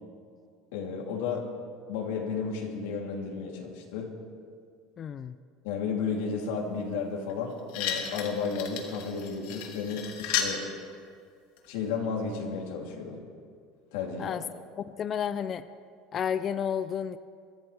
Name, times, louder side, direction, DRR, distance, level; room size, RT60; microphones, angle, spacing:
voice 1, 0.7-1.4 1.9-4.1 5.6-10.6 11.7-13.2 13.9-14.4, left 5 dB, 85° left, -1 dB, 3.2 m, -33 dB
voice 2, 5.0-5.3 14.2-14.4 14.8-15.7 16.1-17.2, left 8 dB, 25° left, 13 dB, 0.4 m, -31 dB
sound 1, 7.3-7.4 7.7-10.6 11.6-11.7, left 8 dB, 65° left, 2.0 m, -33 dB
23.0 x 15.5 x 3.5 m, 2.2 s
cardioid pair, 170°, 0 cm